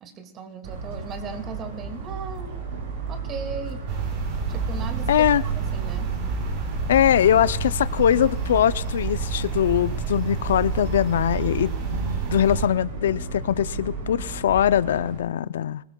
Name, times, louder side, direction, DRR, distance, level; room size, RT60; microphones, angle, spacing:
voice 1, 0.0-2.5 3.1-3.8 4.5-6.1, right 5 dB, 30° right, 2.0 m, -37 dB
Motor vehicle (road) / Siren, 0.6-15.2, right 3 dB, 65° right, 6.9 m, -34 dB
sound 1, 3.9-12.7, right 5 dB, 45° right, 4.1 m, -29 dB
voice 2, 5.1-5.4 6.9-15.8, left 10 dB, 80° left, 0.4 m, -22 dB
23.5 x 19.5 x 2.3 m
hypercardioid pair, 130°, 0 cm